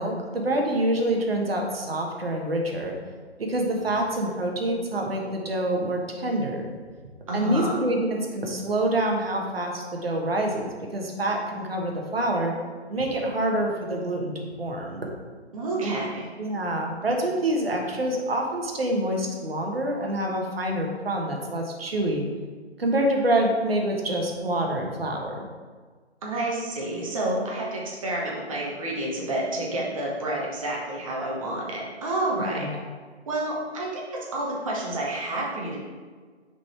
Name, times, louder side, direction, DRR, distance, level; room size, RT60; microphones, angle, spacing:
voice 1, 0.0-2.9 3.4-6.7 7.3-12.5 12.9-15.1 15.8-15.9 16.4-22.3 22.8-25.4 32.4-32.8, right 1 dB, 60° right, 1 dB, 1.4 m, -26 dB
voice 2, 7.3-7.8 15.5-16.3 26.2-32.7 33.3-35.8, right 1 dB, 30° right, -3 dB, 1.2 m, -29 dB
6.7 x 4.1 x 4.4 m, 1.5 s
figure-of-eight pair, 145°, 34 cm